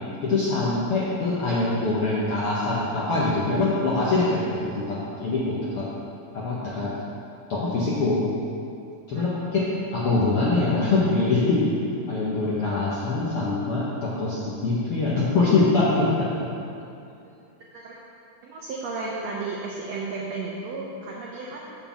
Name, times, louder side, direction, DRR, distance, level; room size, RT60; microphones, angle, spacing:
voice 1, 0.2-5.9 6.3-6.9 7.5-8.3 9.1-9.7 9.9-11.7 12.1-16.3, left 3 dB, 65° left, -8 dB, 1.4 m, -24 dB
voice 2, 18.4-21.8, right 3 dB, 80° right, -2 dB, 1.5 m, -33 dB
6.7 x 5.5 x 7.1 m, 2.6 s
omnidirectional pair, 4.0 m